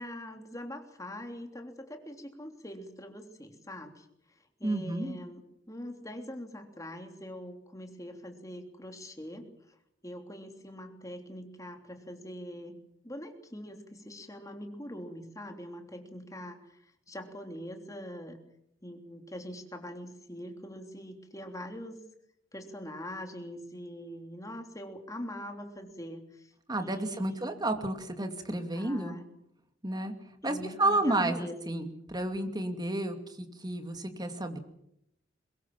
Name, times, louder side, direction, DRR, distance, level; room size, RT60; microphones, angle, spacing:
voice 1, 0.0-4.1 4.6-9.5 10.0-12.8 13.0-16.8 17.1-18.4 18.8-22.0 22.5-27.5 28.7-29.2 30.4-31.9, equal, 15° left, 4 dB, 3.2 m, -43 dB
voice 2, 4.6-5.2 26.7-29.2 29.8-30.1 30.4-34.6, right 2 dB, 20° right, 6 dB, 2.6 m, -31 dB
23.0 x 21.5 x 7.3 m, 0.77 s
head